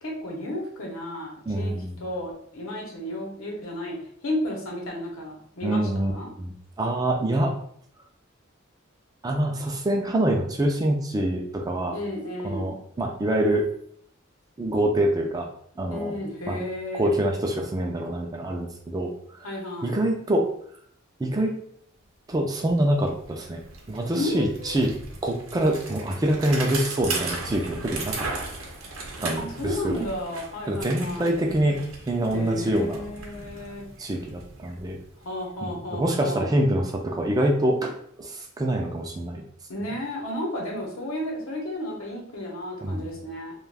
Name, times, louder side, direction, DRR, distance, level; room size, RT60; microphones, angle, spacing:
voice 1, 0.0-1.7 2.0-4.0 4.2-6.3 11.9-12.8 15.9-17.1 19.4-20.0 24.1-24.8 29.4-31.3 32.3-33.8 35.2-36.5 39.7-43.5, left 1 dB, 80° left, -1 dB, 0.8 m, -33 dB
voice 2, 1.5-2.0 5.6-6.1 6.4-7.5 9.2-12.0 12.4-13.7 14.6-15.5 15.8-16.6 16.9-19.1 19.8-20.5 21.2-21.5 22.3-23.6 23.9-24.9 25.2-28.3 29.2-30.0 30.7-33.0 34.0-35.0 35.6-37.9 38.2-39.4 39.8-39.9 42.8-43.1, right 1 dB, 20° right, 2 dB, 0.3 m, -25 dB
Bicycle, 22.3-22.4 22.6-35.6, right 3 dB, 80° right, 0.7 m, -37 dB
2.4 x 2.3 x 3.3 m, 0.65 s
head